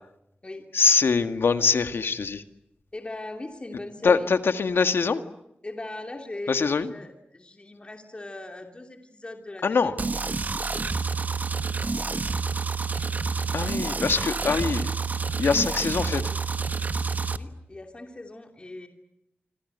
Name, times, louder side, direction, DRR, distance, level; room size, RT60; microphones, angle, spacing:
voice 1, 0.7-2.4 4.0-5.2 6.5-6.9 9.6-9.9 12.9-13.0 13.5-14.9 15.4-16.2, left 5 dB, 80° left, 9 dB, 1.9 m, -23 dB
voice 2, 2.9-4.3 5.6-9.9 17.4-18.9, left 2 dB, 30° left, 4 dB, 2.8 m, -39 dB
sound 1, 10.0-17.4, right 4 dB, 45° right, 1.3 m, -28 dB
27.0 x 26.5 x 8.1 m, 0.83 s
wide cardioid pair, 120°, 4 cm